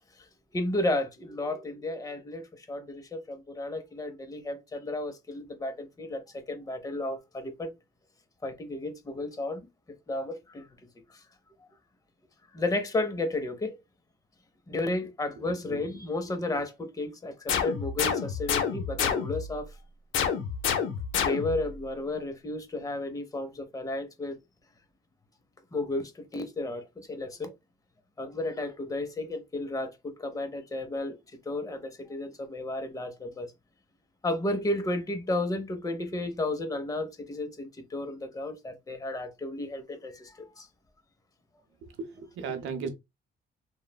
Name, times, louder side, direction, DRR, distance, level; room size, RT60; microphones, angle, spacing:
voice 1, 0.5-7.7 8.4-9.6 10.1-10.7 11.1-11.2 12.5-13.8 14.7-19.7 21.2-24.4 25.7-27.5 28.2-31.2 31.5-33.5 34.2-40.7, left 2 dB, 20° left, 0.6 m, -33 dB
voice 2, 15.4-15.9 41.8-42.9, right 5 dB, 80° right, 0.6 m, -36 dB
sound 1, 17.5-19.6 20.1-21.7, left 7 dB, 80° left, 0.6 m, -29 dB
3.0 x 2.1 x 2.2 m
cardioid pair, 90°, 20 cm